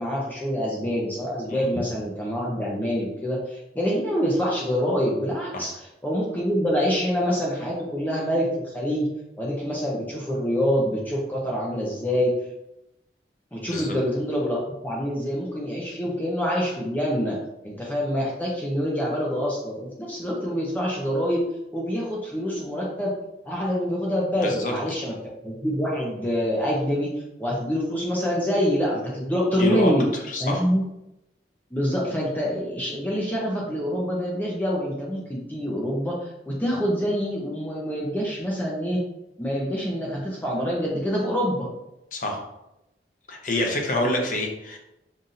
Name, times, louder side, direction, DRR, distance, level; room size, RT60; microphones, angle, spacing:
voice 1, 0.0-9.1 9.4-12.3 13.5-14.6 14.8-17.4 17.6-21.4 21.7-23.1 23.5-25.1 25.4-27.1 27.4-30.1 30.4-30.8 31.7-39.0 39.4-41.7, equal, 10° left, -4 dB, 0.6 m, -26 dB
voice 2, 24.4-24.7 29.6-29.9 30.3-30.6 42.1-42.4 43.3-44.8, left 1 dB, 45° left, 1 dB, 0.7 m, -26 dB
5.5 x 2.7 x 2.5 m, 0.89 s
head